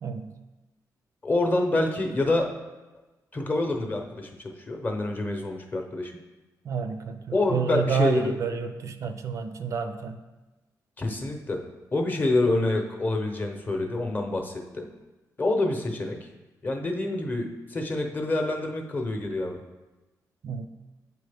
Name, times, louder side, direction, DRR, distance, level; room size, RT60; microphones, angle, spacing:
voice 1, 0.0-0.4 6.6-10.2 20.4-20.7, right 6 dB, 50° right, 8 dB, 0.4 m, -29 dB
voice 2, 1.2-2.5 3.3-6.1 7.3-8.3 11.0-11.6 11.9-14.8 15.4-16.2 16.6-19.6, left 2 dB, 25° left, 3 dB, 0.7 m, -27 dB
8.1 x 4.1 x 3.4 m, 1.1 s
wide cardioid pair, 145°, 7 cm